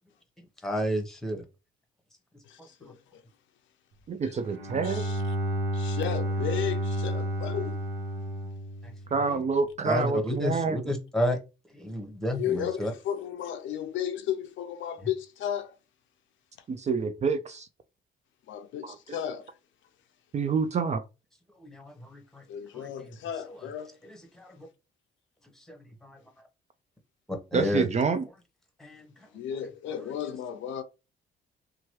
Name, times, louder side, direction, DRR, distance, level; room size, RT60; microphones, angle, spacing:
voice 1, 0.6-1.4 2.8-2.9 8.8-8.9 9.3-9.4 9.8-11.4 11.7-12.9 21.6-22.4 22.7-22.9 23.4-23.5 24.0-24.7 25.6-26.2 27.3-27.9 28.8-29.3, equal, ahead, 1.0 m, -31 dB
voice 2, 2.4-3.2 4.2-4.3 4.8-5.2 5.7-7.8 12.3-15.8 18.5-19.5 22.5-24.0 29.3-30.8, left 9 dB, 75° left, 0.5 m, -34 dB
voice 3, 4.1-5.0 9.1-10.9 16.7-17.7 18.8-19.2 20.3-21.0 27.5-28.2, right 5 dB, 35° right, 0.4 m, -28 dB
Bowed string instrument, 4.4-9.4, right 1 dB, 85° right, 0.7 m, -31 dB
2.9 x 2.3 x 3.0 m
cardioid pair, 90°, 20 cm